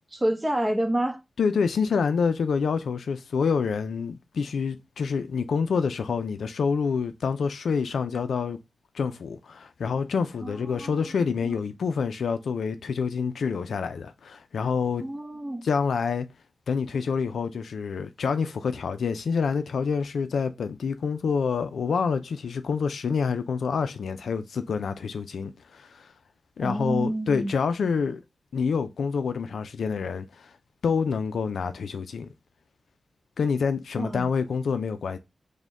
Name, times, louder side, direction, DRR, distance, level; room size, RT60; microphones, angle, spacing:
voice 1, 0.1-1.2 10.4-11.6 15.0-15.7 26.6-27.5 34.0-34.3, right 1 dB, 20° right, 0.7 m, -29 dB
voice 2, 1.4-8.6 8.9-15.0 15.6-16.3 16.7-26.1 26.6-28.2 28.5-30.5 30.8-32.3 33.4-35.2, left 5 dB, 85° left, 0.3 m, -27 dB
5.0 x 2.1 x 3.5 m
cardioid pair, 65°, 0 cm